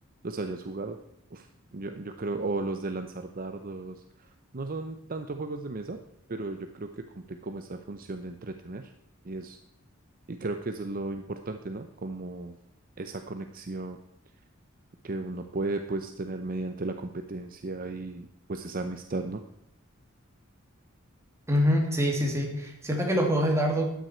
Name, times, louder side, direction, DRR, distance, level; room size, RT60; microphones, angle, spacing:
voice 1, 0.2-1.0 1.3-6.0 6.3-8.9 9.2-9.6 10.3-12.6 13.0-14.0 15.0-19.4, right 2 dB, 45° right, 7 dB, 0.7 m, -35 dB
voice 2, 21.5-23.8, equal, 15° right, 0 dB, 2.6 m, -25 dB
13.0 x 9.3 x 4.4 m, 0.82 s
head